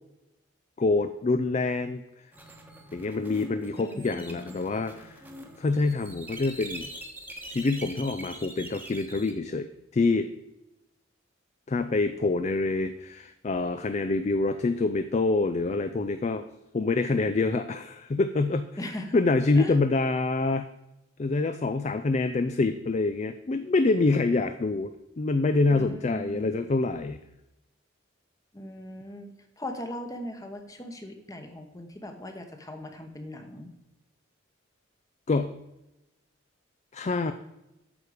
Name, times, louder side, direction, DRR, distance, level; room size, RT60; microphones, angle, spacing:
voice 1, 0.8-2.0 2.9-5.2 5.6-6.9 7.5-10.3 11.7-16.4 16.7-18.7 19.1-20.7 21.2-27.2 35.3-35.5 36.9-37.3, left 3 dB, 35° left, 10 dB, 0.4 m, -26 dB
sound 1, 2.3-9.3, right 1 dB, 10° right, 1.1 m, -44 dB
voice 2, 3.8-4.7 18.8-19.2 19.6-19.7 25.7-26.5 28.5-29.3 29.6-33.7, left 1 dB, 15° left, 5 dB, 1.0 m, -39 dB
8.8 x 6.6 x 4.9 m, 0.93 s
head